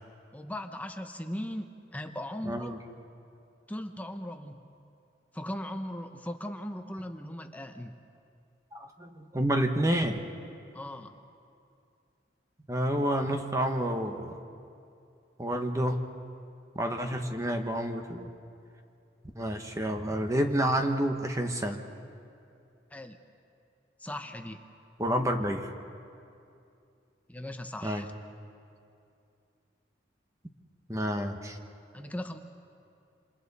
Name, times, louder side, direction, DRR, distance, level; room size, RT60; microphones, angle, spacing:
voice 1, 0.3-2.8 3.7-4.6 5.3-8.0 10.7-11.2 22.9-23.2 24.0-24.6 27.3-28.1 31.9-32.4, left 1 dB, 10° left, 6 dB, 0.8 m, -38 dB
voice 2, 2.5-2.8 8.7-10.2 12.7-14.4 15.4-16.0 16.7-18.3 19.3-21.8 25.0-25.7 27.8-28.0 30.9-31.6, right 1 dB, 20° right, 5 dB, 1.1 m, -29 dB
27.5 x 27.0 x 4.2 m, 2.5 s
head